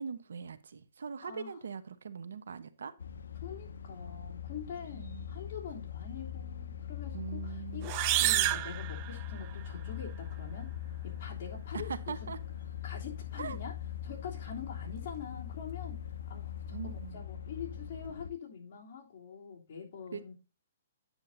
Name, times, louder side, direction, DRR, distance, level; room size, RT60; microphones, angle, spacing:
voice 1, 0.0-2.9 4.9-5.2 7.1-7.9 11.8-12.4 13.4-13.6 16.7-17.2 20.1-20.2, right 6 dB, 85° right, 1.0 m, -41 dB
voice 2, 1.2-1.6 3.4-10.7 11.0-12.3 12.8-13.7 14.0-16.0 16.3-20.3, left 7 dB, 45° left, 3.2 m, -45 dB
sound 1, 3.0-18.3, left 9 dB, 85° left, 0.6 m, -41 dB
sound 2, 7.8-9.7, right 17 dB, 30° right, 0.3 m, -30 dB
9.7 x 7.2 x 2.7 m
hypercardioid pair, 160°, 0 cm